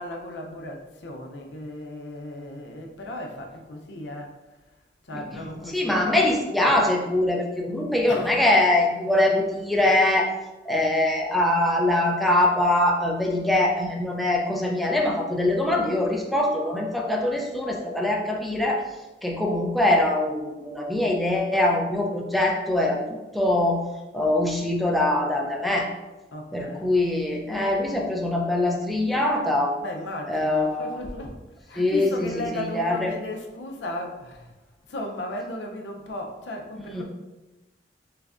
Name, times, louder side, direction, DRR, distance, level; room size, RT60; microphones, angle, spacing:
voice 1, 0.0-4.3 5.1-6.3 8.1-8.4 26.3-26.9 29.8-34.5 34.9-37.0, left 1 dB, 85° left, 2 dB, 0.6 m, -35 dB
voice 2, 5.1-10.3 10.7-18.9 19.2-23.8 24.1-25.9 26.5-29.7 30.3-31.0 31.8-33.1 36.8-37.0, left 1 dB, ahead, -2 dB, 0.4 m, -23 dB
3.5 x 3.2 x 2.4 m, 1.1 s
head